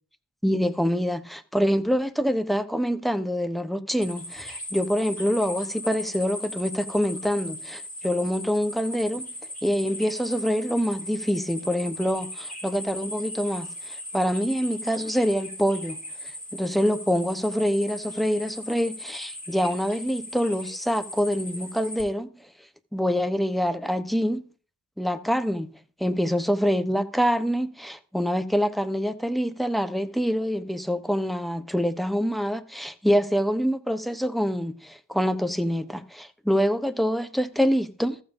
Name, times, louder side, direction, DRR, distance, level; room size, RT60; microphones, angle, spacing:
voice 1, 0.4-9.3 9.6-22.3 22.9-24.4 25.0-38.2, equal, ahead, 0.9 m, -25 dB
sound 1, 4.0-22.0, left 1 dB, 20° left, 3.6 m, -38 dB
14.5 x 7.2 x 2.6 m
cardioid pair, 50°, 42 cm